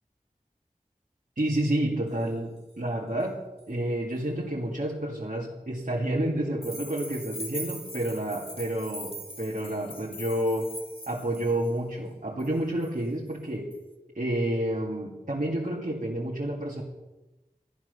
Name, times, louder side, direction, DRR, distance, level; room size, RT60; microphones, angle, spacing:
voice 1, 1.4-10.7 11.1-13.7 14.1-16.8, right 1 dB, 65° right, -4 dB, 2.3 m, -29 dB
sound 1, 6.6-11.7 12.4-12.5 12.8-12.9 13.7-13.8, equal, 40° left, 2.3 m, -41 dB
14.0 x 10.5 x 6.7 m, 1.1 s
wide cardioid pair, 45°, 15 cm